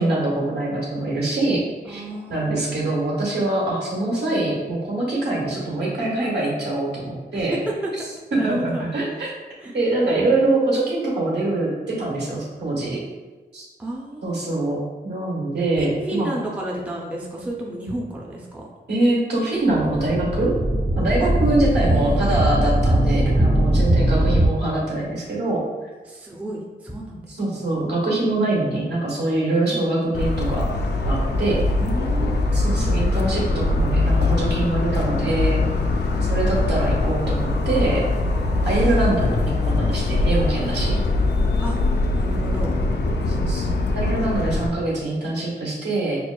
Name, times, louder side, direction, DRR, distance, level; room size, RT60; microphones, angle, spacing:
voice 1, 0.0-1.6 1.9-2.0 2.3-7.6 8.3-9.3 9.7-13.0 13.5-13.6 14.2-14.8 15.0-16.3 18.9-20.5 20.9-25.6 27.4-30.7 31.0-31.6 32.5-35.6 36.3-38.0 38.6-40.9 43.3-46.2, right 2 dB, 75° right, -4 dB, 1.3 m, -24 dB
voice 2, 1.9-2.7 7.3-7.4 7.7-7.8 8.4-8.8 9.6-9.8 13.8-14.4 15.8-18.7 21.8-22.3 26.1-27.6 28.5-28.6 29.7-29.8 31.7-33.2 41.6-41.8 42.1-42.8 43.0-43.2, right 1 dB, 10° right, -3 dB, 0.5 m, -32 dB
sound 1, 19.7-24.5, right 1 dB, 40° right, 1.3 m, -20 dB
Motor vehicle (road) / Siren, 30.1-44.7, left 2 dB, 80° left, 0.4 m, -22 dB
5.9 x 2.4 x 2.2 m, 1.3 s
wide cardioid pair, 160°, 18 cm